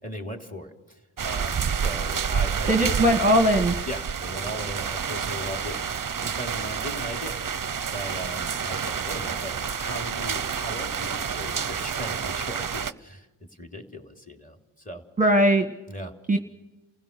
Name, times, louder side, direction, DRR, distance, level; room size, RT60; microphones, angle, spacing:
voice 1, 0.0-3.5 3.9-5.8 6.2-7.3 7.9-15.0 15.9-16.1, equal, 15° left, 4 dB, 3.2 m, -38 dB
sound 1, 1.2-12.9, right 7 dB, 40° right, 0.7 m, -29 dB
voice 2, 2.7-3.7 15.2-15.7 16.3-16.4, equal, 15° right, 4 dB, 1.4 m, -19 dB
29.5 x 16.0 x 6.8 m, 1.1 s
cardioid pair, 55°, 50 cm